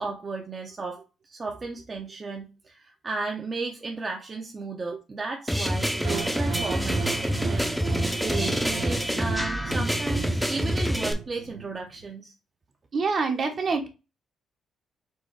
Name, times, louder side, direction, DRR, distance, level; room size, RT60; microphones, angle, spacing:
voice 1, 0.0-7.7 8.2-12.3, right 3 dB, 30° right, 0.8 m, -34 dB
sound 1, 5.5-11.1, equal, ahead, 0.8 m, -27 dB
sound 2, 6.0-12.0, right 6 dB, 80° right, 0.6 m, -36 dB
voice 2, 12.9-13.9, right 4 dB, 50° right, 1.1 m, -26 dB
4.5 x 2.5 x 4.6 m
cardioid pair, 90°, 0 cm